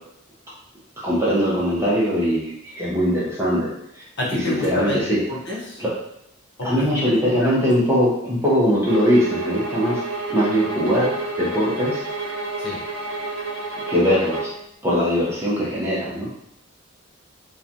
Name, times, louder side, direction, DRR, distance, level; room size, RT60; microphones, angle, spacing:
voice 1, 1.0-4.0 4.3-5.2 5.8-5.9 6.6-10.0 10.3-12.0 13.9-14.5 14.8-16.3, equal, 15° right, -7 dB, 0.6 m, -21 dB
voice 2, 4.2-5.0 5.3-5.8 6.6-7.0 7.4-7.5 12.6-12.8, left 2 dB, 55° left, -5 dB, 0.8 m, -27 dB
sound 1, 8.9-14.6, right 3 dB, 70° right, 0.5 m, -30 dB
2.9 x 2.2 x 2.5 m, 0.77 s
head